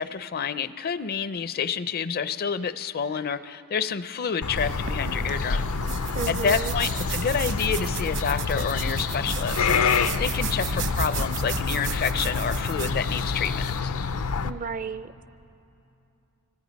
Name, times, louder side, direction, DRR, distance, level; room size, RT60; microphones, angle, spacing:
voice 1, 0.0-5.7 6.3-13.9, left 6 dB, 45° left, 14 dB, 0.5 m, -29 dB
sound 1, 4.4-14.5, left 5 dB, 85° left, 0.6 m, -28 dB
sound 2, 4.6-13.8, right 5 dB, 55° right, 1.1 m, -34 dB
voice 2, 6.1-6.8 14.4-15.1, right 5 dB, 40° right, 13 dB, 0.5 m, -32 dB
Fowl, 8.6-13.6, right 4 dB, 75° right, 3.5 m, -50 dB
25.5 x 25.5 x 5.2 m, 2.8 s
head